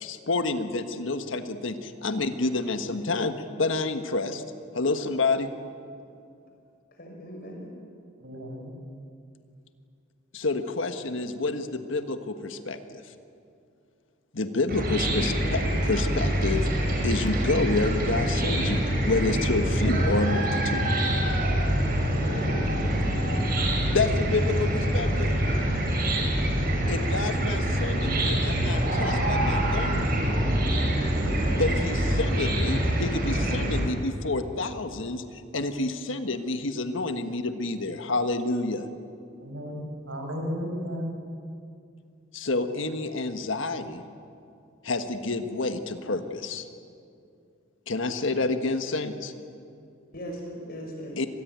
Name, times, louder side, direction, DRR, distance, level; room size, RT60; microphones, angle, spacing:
voice 1, 0.0-4.4 4.7-5.5 10.3-13.0 14.3-16.7 17.0-20.9 22.9-23.1 23.9-25.4 26.9-30.1 31.5-38.9 42.3-44.0 44.8-46.7 47.9-49.3 51.2-51.3, left 3 dB, 75° left, 8 dB, 1.4 m, -29 dB
voice 2, 6.9-7.7 22.0-22.6 50.1-51.2, equal, 50° left, 1 dB, 6.2 m, -38 dB
voice 3, 8.2-8.7 39.4-39.8 40.1-41.2, equal, 80° right, 3 dB, 5.7 m, -33 dB
Chicken rooster / Cricket, 14.7-33.8, right 1 dB, 50° right, 5.8 m, -25 dB
25.5 x 19.5 x 9.5 m, 2.4 s
head